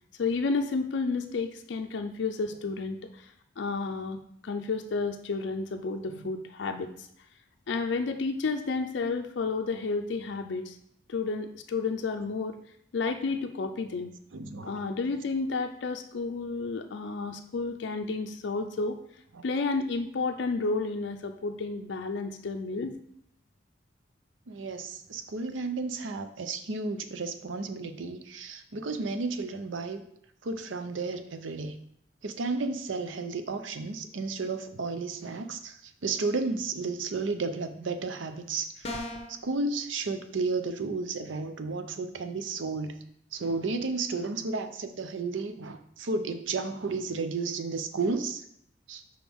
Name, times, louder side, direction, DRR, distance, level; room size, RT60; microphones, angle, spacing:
voice 1, 0.2-7.1 7.7-10.8 11.1-12.6 12.9-14.1 14.7-19.0 19.4-23.0, left 4 dB, 65° left, 5 dB, 0.4 m, -31 dB
voice 2, 14.3-14.8 19.3-19.4 24.5-30.0 30.4-31.8 32.2-39.0 39.3-43.0 43.3-48.5 48.9-49.0, right 3 dB, 90° right, 9 dB, 0.6 m, -33 dB
sound 1, 38.8-39.4, left 1 dB, 35° left, 0.8 m, -35 dB
6.0 x 4.8 x 3.5 m, 0.70 s
head